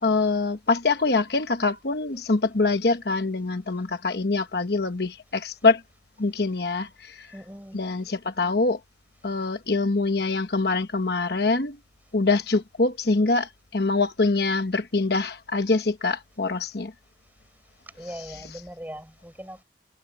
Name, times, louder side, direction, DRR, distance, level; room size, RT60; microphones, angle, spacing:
voice 1, 0.0-5.8 6.2-7.3 7.7-8.8 9.2-11.8 12.1-16.9 18.0-18.6, left 3 dB, 60° left, 1.1 m, -24 dB
voice 2, 7.3-7.8 18.0-19.6, equal, 10° right, 6.7 m, -40 dB
head